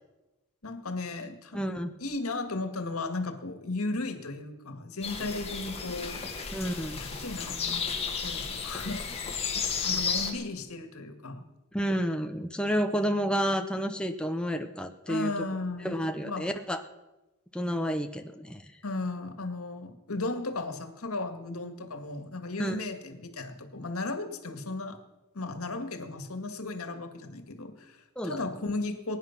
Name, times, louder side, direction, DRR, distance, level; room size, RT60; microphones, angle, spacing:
voice 1, 0.6-1.6 2.0-6.2 6.9-7.9 8.2-9.1 9.9-11.4 15.1-16.5 18.8-25.0 25.3-29.2, left 2 dB, 80° left, 7 dB, 1.8 m, -35 dB
voice 2, 1.5-1.9 6.5-7.0 11.7-15.3 15.8-16.8 17.5-18.6 22.6-22.8 28.2-28.4, equal, 5° left, 5 dB, 0.7 m, -30 dB
sound 1, 5.0-10.3, left 5 dB, 30° left, 2.0 m, -33 dB
22.0 x 10.0 x 5.9 m, 1.0 s
head